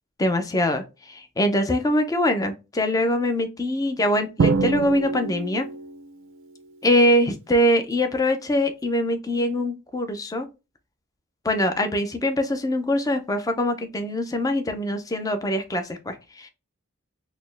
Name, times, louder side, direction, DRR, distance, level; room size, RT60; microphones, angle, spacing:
voice 1, 0.2-5.7 6.8-10.5 11.4-16.5, left 1 dB, 15° left, 0.4 m, -23 dB
Drum, 4.4-6.1, right 4 dB, 55° right, 0.4 m, -24 dB
4.1 x 2.1 x 3.2 m
head